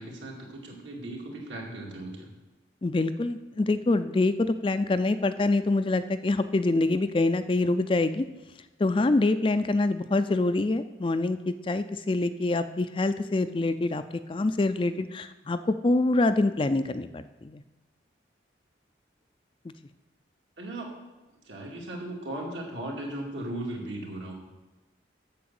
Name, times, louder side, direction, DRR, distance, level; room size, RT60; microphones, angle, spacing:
voice 1, 0.0-2.3 20.6-21.0 21.4-24.3, right 1 dB, 75° right, -1 dB, 2.5 m, -37 dB
voice 2, 2.8-8.3 8.8-14.0 14.3-17.6, left 2 dB, 25° left, 11 dB, 0.4 m, -25 dB
8.6 x 7.3 x 7.0 m, 1.1 s
head